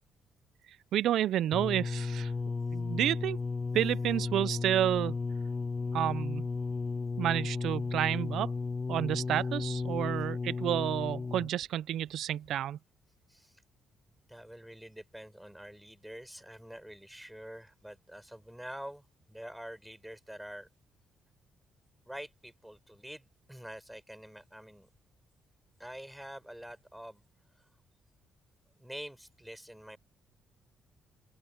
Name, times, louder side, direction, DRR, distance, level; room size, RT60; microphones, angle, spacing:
voice 1, 0.9-2.3 2.7-3.4 3.7-5.2 5.9-6.5 7.2-8.5 8.9-12.8, right 11 dB, 75° right, 0.5 m, -30 dB
sound 1, 1.5-11.6 12.5-12.6, left 4 dB, 30° left, 0.4 m, -34 dB
voice 2, 13.3-13.6 14.3-20.7 22.1-24.9 25.8-27.2 27.6-27.7 28.7-30.0, equal, 5° right, 7.3 m, -46 dB
open air
cardioid pair, 120°, 0 cm